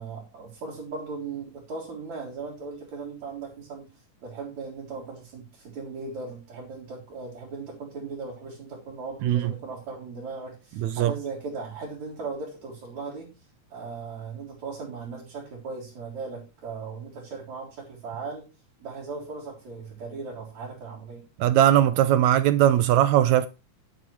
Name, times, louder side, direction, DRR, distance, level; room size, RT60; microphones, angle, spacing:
voice 1, 0.0-3.9 4.2-13.3 13.7-18.5 18.8-21.2, right 4 dB, 60° right, 5.0 m, -37 dB
voice 2, 10.8-11.1 21.4-23.5, right 12 dB, 75° right, 1.8 m, -19 dB
10.5 x 8.6 x 4.5 m
omnidirectional pair, 3.6 m